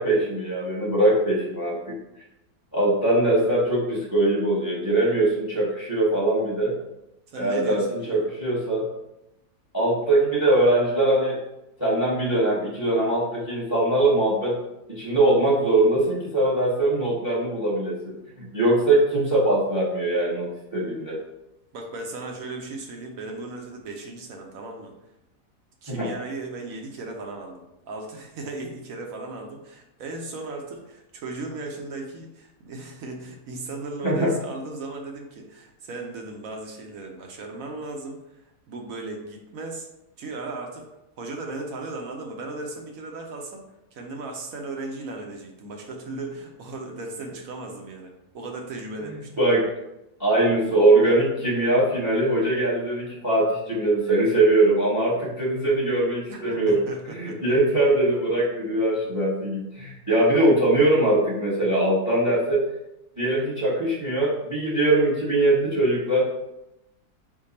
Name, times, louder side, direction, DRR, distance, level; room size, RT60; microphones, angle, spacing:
voice 1, 0.0-1.9 2.7-6.7 7.4-8.8 9.7-11.4 11.8-14.5 14.9-21.2 25.9-26.1 34.0-34.3 49.4-49.6 50.2-56.8 57.1-62.6 63.2-66.3, right 2 dB, 15° right, -4 dB, 0.9 m, -22 dB
voice 2, 7.3-8.2 21.7-24.9 25.8-39.9 40.2-40.9 41.2-43.6 43.9-49.3 56.3-57.5, right 2 dB, 65° right, 2 dB, 1.0 m, -36 dB
4.9 x 2.3 x 4.0 m, 0.90 s
omnidirectional pair, 1.7 m